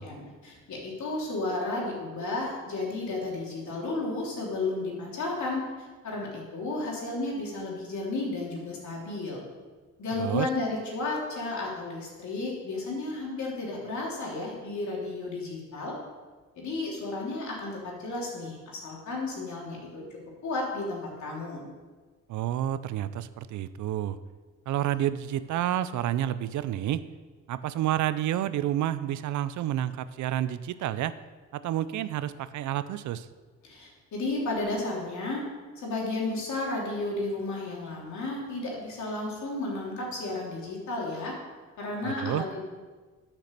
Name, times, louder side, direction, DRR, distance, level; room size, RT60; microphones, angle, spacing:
voice 1, 0.0-9.4 10.0-15.9 16.5-20.0 20.4-21.7 33.6-35.4 35.7-41.3 41.8-42.6, left 2 dB, 70° left, -3 dB, 3.3 m, -33 dB
voice 2, 10.2-10.5 22.3-24.2 24.7-27.0 27.5-31.1 31.5-33.3 42.0-42.4, right 12 dB, 75° right, 14 dB, 0.6 m, -29 dB
8.9 x 6.0 x 6.7 m, 1.4 s
cardioid pair, 90°, 30 cm